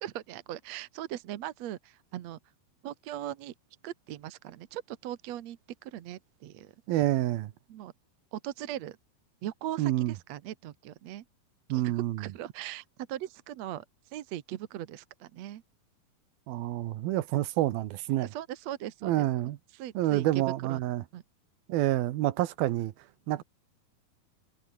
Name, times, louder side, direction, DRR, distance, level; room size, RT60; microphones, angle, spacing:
voice 1, 0.0-2.4 2.8-3.5 3.8-6.8 7.7-7.9 8.3-9.0 9.4-11.2 11.7-15.6 18.3-19.3 19.7-20.8 21.1-21.2 23.4-23.5, right 12 dB, 65° right, 1.8 m, -39 dB
voice 2, 6.9-7.5 9.8-10.1 11.7-12.2 16.5-18.3 19.0-19.6 20.0-21.0 21.7-22.9 23.3-23.4, right 15 dB, 80° right, 3.0 m, -28 dB
omnidirectional pair, 4.3 m